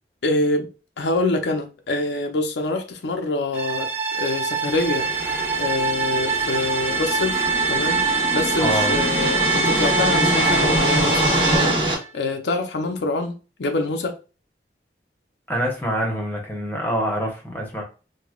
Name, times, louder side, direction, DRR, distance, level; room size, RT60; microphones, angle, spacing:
voice 1, 0.2-0.7 1.0-11.2 11.5-13.3 13.6-14.2, left 2 dB, 85° left, 0.6 m, -26 dB
sound 1, 3.5-12.0, right 4 dB, 10° right, 0.6 m, -24 dB
sound 2, 4.7-11.9, right 1 dB, 30° right, 1.0 m, -25 dB
voice 2, 8.6-8.9 15.5-17.8, equal, 10° left, 1.0 m, -25 dB
4.8 x 2.2 x 2.3 m
head